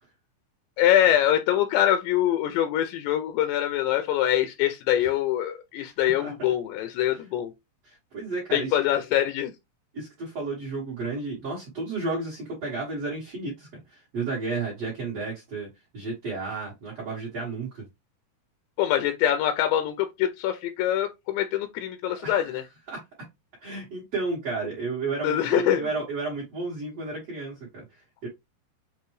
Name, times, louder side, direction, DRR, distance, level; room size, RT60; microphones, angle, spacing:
voice 1, 0.8-7.5 8.5-9.5 18.8-22.6 25.2-25.8, left 11 dB, 80° left, 2.7 m, -24 dB
voice 2, 7.8-8.8 9.9-15.7 15.9-17.8 22.2-22.6 22.9-23.0 23.6-28.3, right 3 dB, 55° right, 1.9 m, -32 dB
6.7 x 2.5 x 3.1 m
omnidirectional pair, 5.0 m